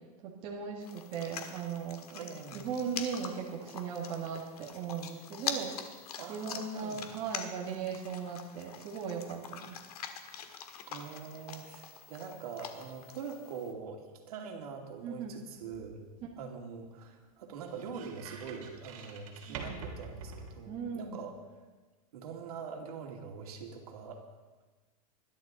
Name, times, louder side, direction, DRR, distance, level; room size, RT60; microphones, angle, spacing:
voice 1, 0.2-2.0 2.5-5.8 6.3-9.8 15.0-15.4 19.5-19.8 20.7-21.2, right 6 dB, 30° right, -2 dB, 1.8 m, -38 dB
sound 1, 0.8-13.7, left 7 dB, 80° left, 1.6 m, -44 dB
voice 2, 2.1-2.7 6.2-7.0 10.9-16.0 16.4-21.3 22.1-24.3, right 5 dB, 75° right, 1 dB, 2.7 m, -43 dB
sound 2, 14.9-21.2, right 5 dB, 60° right, 3.1 m, -48 dB
20.5 x 12.0 x 4.0 m, 1.3 s
supercardioid pair, 170°, 19 cm